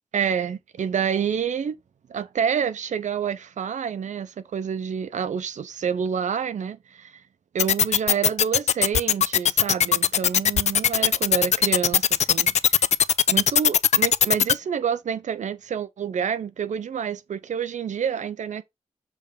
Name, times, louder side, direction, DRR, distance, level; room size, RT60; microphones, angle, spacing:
voice 1, 0.1-1.8 2.1-7.2 7.5-12.8 13.3-18.6, right 7 dB, 85° right, 0.7 m, -28 dB
sound 1, 7.6-14.5, left 8 dB, 70° left, 0.4 m, -18 dB
7.1 x 3.4 x 5.1 m
wide cardioid pair, 100°, 12 cm